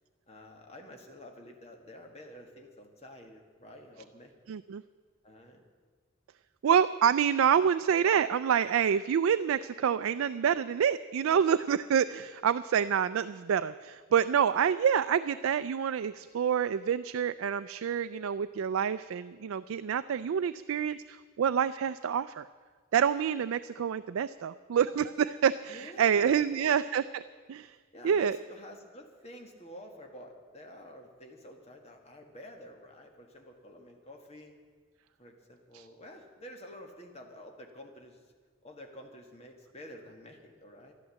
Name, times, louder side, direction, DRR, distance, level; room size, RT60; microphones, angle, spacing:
voice 1, 0.3-4.3 5.2-5.6 25.7-26.8 27.9-34.6 35.2-38.3 38.6-40.9, left 1 dB, 30° left, 3 dB, 1.6 m, -49 dB
voice 2, 4.5-4.8 6.6-22.5 22.9-27.2 27.5-27.8 28.0-28.4 35.7-35.9, right 8 dB, 75° right, 12 dB, 0.3 m, -27 dB
12.5 x 11.5 x 7.5 m, 1.5 s
head